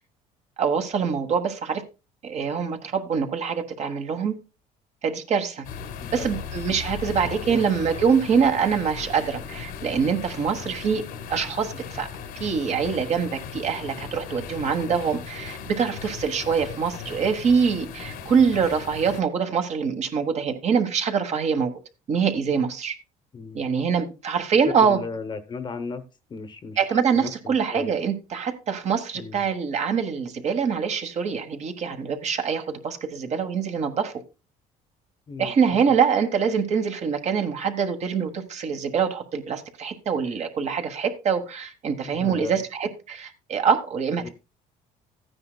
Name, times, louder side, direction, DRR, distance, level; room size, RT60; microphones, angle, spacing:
voice 1, 0.6-1.8 2.2-4.4 5.0-5.6 6.1-11.0 11.3-12.1 12.3-21.7 22.1-22.9 23.5-25.0 26.8-34.1 35.4-44.3, right 6 dB, 50° right, 1.4 m, -24 dB
sound 1, 5.6-19.2, left 7 dB, 80° left, 1.4 m, -37 dB
voice 2, 6.0-6.4 7.2-7.7 14.6-14.9 23.3-23.6 24.5-26.0 26.3-27.9 29.1-29.5 35.3-35.8 42.0-42.6 44.2-44.3, left 4 dB, 30° left, 0.9 m, -36 dB
14.0 x 9.7 x 2.3 m
cardioid pair, 110°, 15 cm